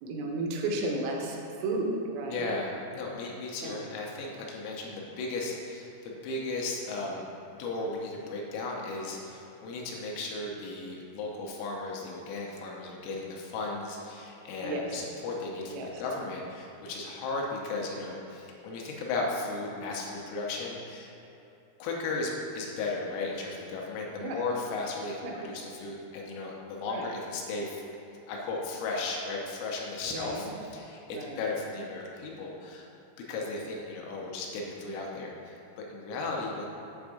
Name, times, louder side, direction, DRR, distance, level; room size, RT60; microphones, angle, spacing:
voice 1, 0.0-2.5 3.6-3.9 14.6-15.0 15.7-16.0 24.2-24.4 25.2-25.4 26.9-27.1 30.1-30.5 31.1-31.4, right 2 dB, 80° right, 1 dB, 3.4 m, -33 dB
voice 2, 2.3-7.2 7.6-21.1 21.8-27.8 28.3-32.9 33.3-36.7, left 3 dB, 90° left, -2 dB, 3.3 m, -35 dB
8.5 x 3.5 x 6.4 m, 2.9 s
omnidirectional pair, 5.9 m